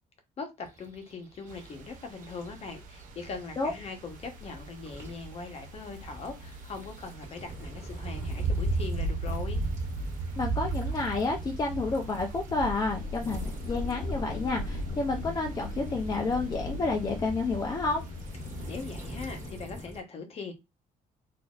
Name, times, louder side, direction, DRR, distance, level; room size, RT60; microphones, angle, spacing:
voice 1, 0.4-9.6 18.7-20.5, left 4 dB, 40° left, 0.9 m, -41 dB
sound 1, 0.6-4.3 4.7-5.1 5.5-15.0 15.5-17.4 18.0-20.0, right 1 dB, 20° right, 1.7 m, -48 dB
sound 2, 1.5-19.5, right 3 dB, 60° right, 0.6 m, -37 dB
sound 3, 4.1-19.9, left 2 dB, 70° left, 0.6 m, -41 dB
voice 2, 10.4-18.0, left 3 dB, 25° left, 0.5 m, -30 dB
4.0 x 2.6 x 2.4 m
cardioid pair, 140°, 15 cm